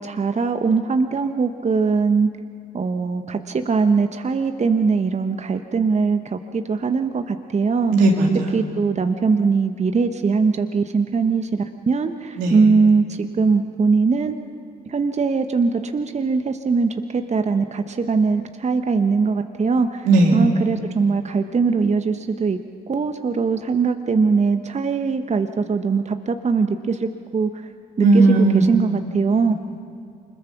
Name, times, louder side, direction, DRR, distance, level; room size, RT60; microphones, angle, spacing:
voice 1, 0.0-2.3 2.7-7.9 8.5-14.3 14.9-22.6 22.9-27.5 28.0-29.5, right 4 dB, 40° right, 8 dB, 1.0 m, -21 dB
voice 2, 7.9-8.6 12.4-12.6 20.0-20.5 28.0-28.9, right 2 dB, 85° right, 1 dB, 2.5 m, -16 dB
25.0 x 21.0 x 6.0 m, 2.4 s
hypercardioid pair, 45°, 19 cm